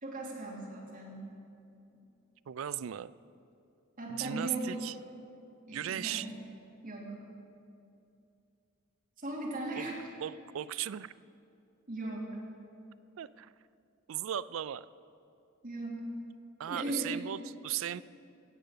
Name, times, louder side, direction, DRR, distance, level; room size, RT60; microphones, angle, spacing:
voice 1, 0.0-1.3 4.0-4.8 5.7-6.3 6.8-7.2 9.2-9.9 11.9-12.3 15.6-16.1 16.6-17.2, right 1 dB, 45° right, -3 dB, 2.8 m, -38 dB
voice 2, 2.5-3.1 4.1-4.9 5.7-6.3 9.7-9.8 10.2-11.1 13.2-13.5 14.1-14.9 16.6-18.0, right 10 dB, 80° right, 17 dB, 0.4 m, -37 dB
16.0 x 6.7 x 8.3 m, 2.6 s
head